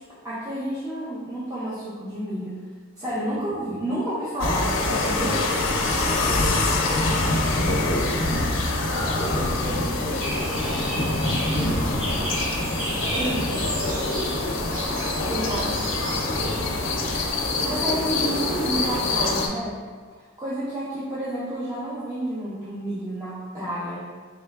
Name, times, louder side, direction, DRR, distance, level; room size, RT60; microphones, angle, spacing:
voice 1, 0.2-2.6 3.0-5.4 5.9-6.6 8.3-8.4 13.2-13.5 15.3-15.7 16.0-16.2 17.3-19.8 20.2-24.2, right 1 dB, 20° right, -11 dB, 0.6 m, -30 dB
sound 1, 4.4-19.5, left 2 dB, 65° left, 0.5 m, -25 dB
voice 2, 4.9-7.2 7.8-8.3 8.7-12.4 12.9-13.8 15.2-16.6 17.0-17.4, equal, 35° right, -10 dB, 1.4 m, -35 dB
sound 2, 10.2-17.3, equal, 80° right, 0.9 m, -32 dB
3.9 x 3.2 x 2.3 m, 1.5 s
head